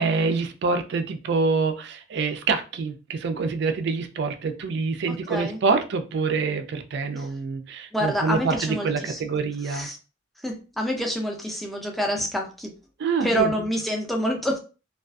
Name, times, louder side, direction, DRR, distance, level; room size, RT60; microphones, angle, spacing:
voice 1, 0.0-9.9 13.0-13.7, right 4 dB, 60° right, 8 dB, 0.3 m, -26 dB
voice 2, 7.9-9.2 9.7-10.0 10.4-12.7 13.2-14.6, equal, ahead, 1 dB, 0.4 m, -27 dB
2.4 x 2.3 x 2.3 m, 0.33 s
head